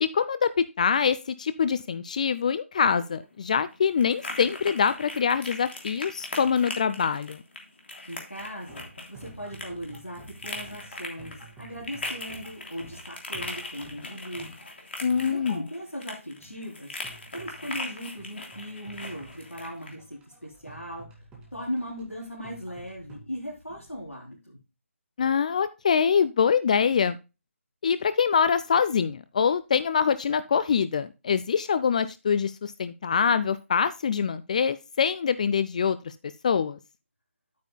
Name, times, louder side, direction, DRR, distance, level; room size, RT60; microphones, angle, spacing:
voice 1, 0.0-7.4 15.0-15.6 25.2-27.2 27.8-36.1 36.4-36.8, left 6 dB, 35° left, 14 dB, 0.4 m, -24 dB
sound 1, 2.8-19.9, left 2 dB, 55° left, 3.2 m, -40 dB
voice 2, 8.1-14.5 15.1-21.2 21.5-24.6, equal, 85° left, -5 dB, 3.5 m, -38 dB
sound 2, 8.4-24.1, right 2 dB, 10° right, 2.3 m, -51 dB
10.5 x 9.3 x 2.2 m, 0.27 s
figure-of-eight pair, 150°, 7 cm